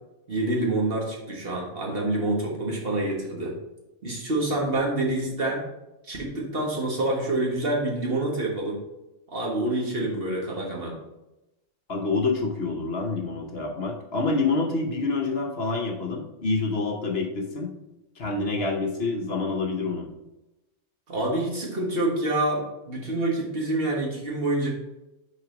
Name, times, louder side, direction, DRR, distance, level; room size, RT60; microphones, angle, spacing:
voice 1, 0.3-3.5 4.0-5.6 6.0-8.8 9.3-10.9 21.1-24.7, right 2 dB, 50° right, -1 dB, 1.6 m, -27 dB
voice 2, 11.9-17.7 18.2-20.1, left 3 dB, 55° left, 2 dB, 1.1 m, -27 dB
6.4 x 4.1 x 5.0 m, 0.96 s
omnidirectional pair, 1.3 m